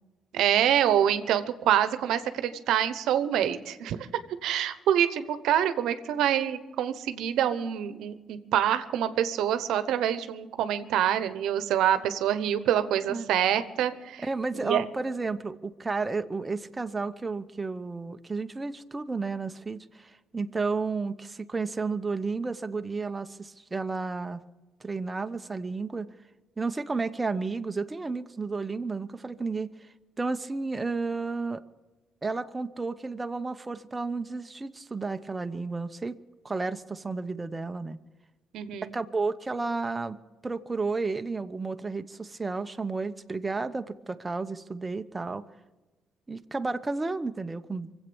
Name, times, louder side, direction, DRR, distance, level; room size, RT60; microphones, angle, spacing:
voice 1, 0.3-4.1 4.4-14.2 14.5-14.8 38.5-38.9, right 10 dB, 85° right, 12 dB, 0.9 m, -26 dB
voice 2, 14.2-24.4 24.8-26.1 26.6-29.9 30.2-31.6 32.2-36.2 36.4-38.0 38.8-40.2 40.4-45.4 46.3-47.9, right 3 dB, 20° right, 9 dB, 0.8 m, -32 dB
24.0 x 8.3 x 7.0 m, 1.2 s
cardioid pair, 90°, 0 cm